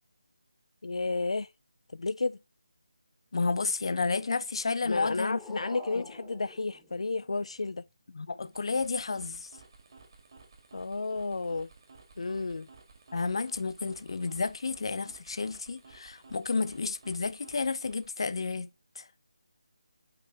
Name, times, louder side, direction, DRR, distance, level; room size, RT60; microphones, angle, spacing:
voice 1, 0.8-1.5 1.9-2.4 4.8-7.8 10.7-11.7 12.2-12.7, left 3 dB, 80° left, 0.3 m, -32 dB
voice 2, 3.3-5.6 5.9-6.0 8.1-9.5 13.1-18.7 19.0-19.1, left 4 dB, 55° left, 0.7 m, -31 dB
sound 1, 4.7-7.7, left 1 dB, ahead, 1.0 m, -49 dB
sound 2, 8.3-18.3, right 4 dB, 45° right, 2.1 m, -56 dB
8.7 x 3.2 x 4.7 m
figure-of-eight pair, 170°, 3 cm